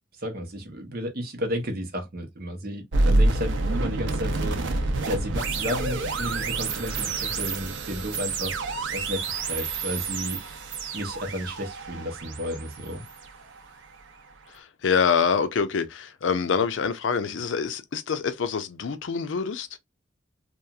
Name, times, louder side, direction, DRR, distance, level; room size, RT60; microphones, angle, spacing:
voice 1, 0.2-8.6 8.9-10.4 10.9-13.0, equal, 50° right, 0.8 m, -33 dB
sound 1, 2.9-13.9, right 2 dB, 85° right, 0.6 m, -28 dB
voice 2, 14.5-19.8, left 6 dB, 90° left, 0.5 m, -26 dB
2.9 x 2.3 x 2.3 m
head